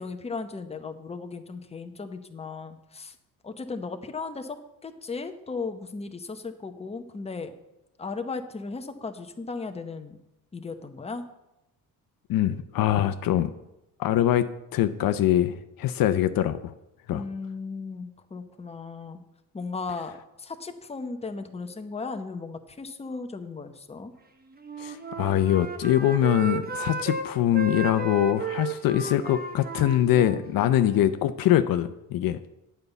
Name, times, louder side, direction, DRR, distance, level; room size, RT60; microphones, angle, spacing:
voice 1, 0.0-3.1 3.4-7.5 8.0-10.2 10.5-11.2 17.1-19.2 19.5-24.1, left 4 dB, 15° left, 6 dB, 0.9 m, -36 dB
voice 2, 12.3-13.5 14.0-16.7 17.1-17.2 24.8-32.4, left 11 dB, 65° left, 11 dB, 0.7 m, -23 dB
Wind instrument woodwind instrument, 24.5-27.3 27.5-31.2, right 3 dB, 25° right, 1.1 m, -34 dB
9.2 x 5.6 x 8.1 m, 0.92 s
cardioid pair, 110°, 36 cm